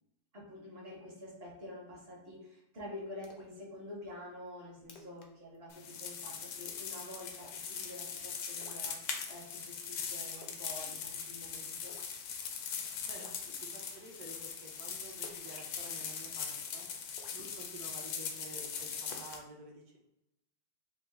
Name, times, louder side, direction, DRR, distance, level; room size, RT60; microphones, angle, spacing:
voice 1, 0.3-12.0, left 1 dB, 45° right, -2 dB, 1.0 m, -48 dB
Splash splatter, 3.2-3.6 4.0-4.1 4.5-4.6 4.8-5.3 5.5-5.8 6.1-6.4 7.4-7.7 8.5-9.4 10.4-10.7 10.9-11.3 11.8-12.2 12.5-12.6 13.1-13.4 15.2-16.4 17.1-18.0 18.5-18.8, left 3 dB, 90° left, 0.5 m, -56 dB
sound 1, 5.7-19.4, left 6 dB, 70° left, 1.0 m, -41 dB
voice 2, 13.6-16.9 17.3-20.0, right 2 dB, 65° right, -1 dB, 1.3 m, -51 dB
4.7 x 2.1 x 3.2 m, 0.83 s
omnidirectional pair, 1.9 m